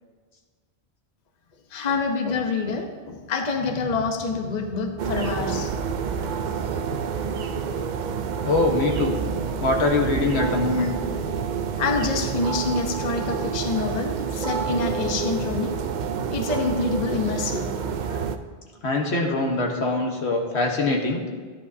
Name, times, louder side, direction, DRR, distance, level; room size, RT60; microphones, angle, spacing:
voice 1, 1.7-5.8 11.8-15.7 16.3-17.7, left 4 dB, 45° left, 4 dB, 0.9 m, -26 dB
sound 1, 5.0-18.4, right 6 dB, 55° right, 0.5 m, -28 dB
voice 2, 8.4-9.2 9.6-10.9 18.0-18.3 18.8-21.2, left 2 dB, 80° left, 1 dB, 1.5 m, -23 dB
13.0 x 10.0 x 2.7 m, 1.5 s
omnidirectional pair, 1.1 m